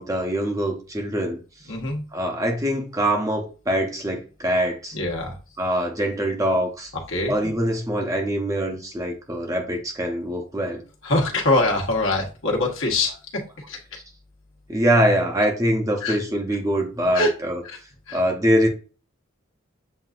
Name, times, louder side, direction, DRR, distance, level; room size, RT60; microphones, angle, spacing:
voice 1, 0.0-1.4 2.1-5.0 5.6-6.9 7.3-10.8 13.9-14.0 14.7-17.6 18.1-18.7, equal, 15° right, 0.7 m, -23 dB
voice 2, 1.7-2.0 4.9-5.4 7.1-7.5 11.0-13.1 13.7-13.8 16.0-16.2 17.1-17.3 17.6-17.8 18.1-18.2, left 2 dB, 70° left, 1.3 m, -23 dB
7.5 x 2.6 x 2.5 m
head